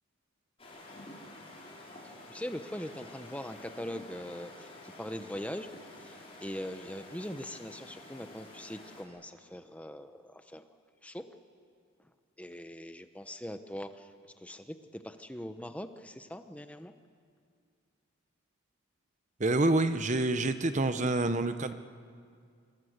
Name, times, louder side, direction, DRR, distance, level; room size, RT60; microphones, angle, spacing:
sound 1, 0.6-9.0, left 1 dB, 30° left, 5.0 m, -50 dB
voice 1, 2.3-10.7 11.0-11.3 12.4-14.1 14.4-16.9, equal, 5° left, 8 dB, 0.9 m, -41 dB
voice 2, 19.4-21.7, right 2 dB, 35° right, 10 dB, 0.8 m, -27 dB
26.0 x 25.5 x 8.1 m, 2.2 s
head